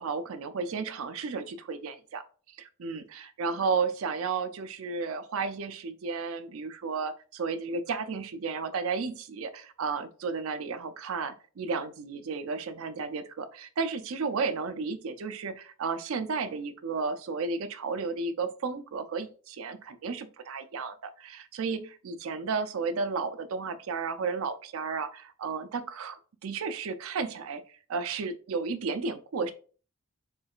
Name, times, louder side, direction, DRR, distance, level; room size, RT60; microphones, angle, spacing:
voice 1, 0.0-27.6 27.9-29.5, right 4 dB, 80° right, 10 dB, 0.4 m, -33 dB
4.5 x 3.1 x 2.4 m, 0.39 s
head